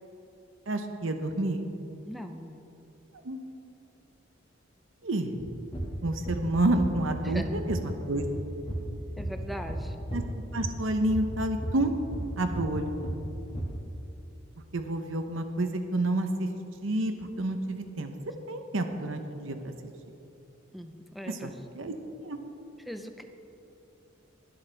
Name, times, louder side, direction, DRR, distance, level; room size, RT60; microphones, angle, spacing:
voice 1, 0.7-1.6 3.2-3.4 5.0-5.4 6.0-8.3 10.1-10.2 10.5-11.9 12.4-12.9 14.7-16.5 16.8-18.1 18.5-19.7 21.3-21.9 22.2-22.4, right 1 dB, 75° right, 6 dB, 0.9 m, -29 dB
voice 2, 2.0-2.6 7.2-7.5 9.2-10.0 20.7-21.5 22.8-23.2, equal, ahead, 5 dB, 0.6 m, -40 dB
sound 1, 5.4-7.9 8.1-10.2 10.6-12.8 13.0-13.6, right 1 dB, 25° left, 1.9 m, -34 dB
23.5 x 7.9 x 3.4 m, 2.9 s
head